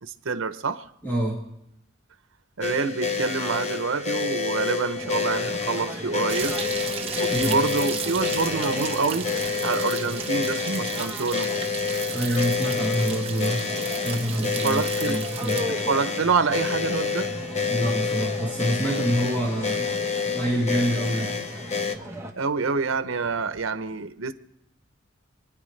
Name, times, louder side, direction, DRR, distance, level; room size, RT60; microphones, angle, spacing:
voice 1, 0.0-0.9 2.6-6.6 7.2-9.3 9.6-11.5 14.4-15.2 15.7-17.3 22.4-24.3, right 4 dB, 85° right, 0.8 m, -27 dB
voice 2, 1.0-1.4 7.3-7.6 12.1-13.7 14.0-15.6 17.6-20.0 20.3-21.4, equal, 10° left, 2.2 m, -26 dB
sound 1, 2.6-22.0, left 5 dB, 35° left, 0.8 m, -29 dB
sound 2, 4.9-22.3, equal, 15° right, 1.1 m, -38 dB
sound 3, 6.3-15.6, right 7 dB, 30° right, 0.9 m, -35 dB
28.5 x 10.0 x 3.3 m
head